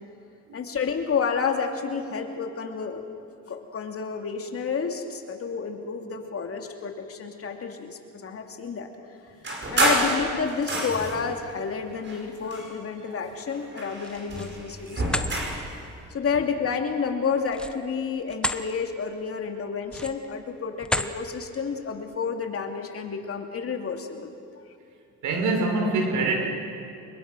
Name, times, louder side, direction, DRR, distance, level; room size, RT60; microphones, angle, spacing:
voice 1, 0.5-3.0 3.5-8.9 9.7-15.4 16.1-24.3, left 6 dB, 50° left, 4 dB, 2.7 m, -30 dB
sound 1, 9.4-11.3 12.0-13.2 13.5-15.7, right 1 dB, 40° right, 5.2 m, -28 dB
sound 2, 13.9-14.6 15.0-15.3 17.5-18.6 19.1-19.3 19.8-20.3 20.8-21.2, left 1 dB, 5° left, 1.1 m, -30 dB
voice 2, 25.2-26.5, right 3 dB, 80° right, 3 dB, 4.4 m, -24 dB
25.5 x 21.5 x 6.2 m, 2.7 s
cardioid pair, 90°, 30 cm